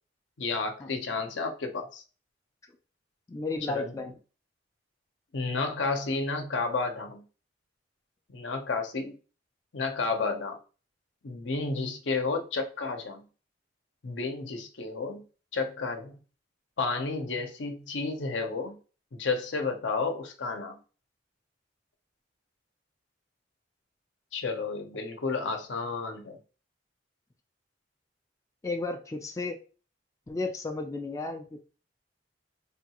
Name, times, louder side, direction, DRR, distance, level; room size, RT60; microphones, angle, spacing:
voice 1, 0.4-2.0 3.7-4.0 5.3-7.2 8.3-9.1 9.7-10.6 11.2-13.2 14.0-15.2 15.5-16.2 16.8-18.8 19.1-20.8 24.3-26.4, left 4 dB, 75° left, 0.6 m, -31 dB
voice 2, 3.3-4.1 28.6-29.6 30.3-31.6, left 3 dB, 15° left, 0.3 m, -33 dB
3.4 x 2.3 x 2.8 m
head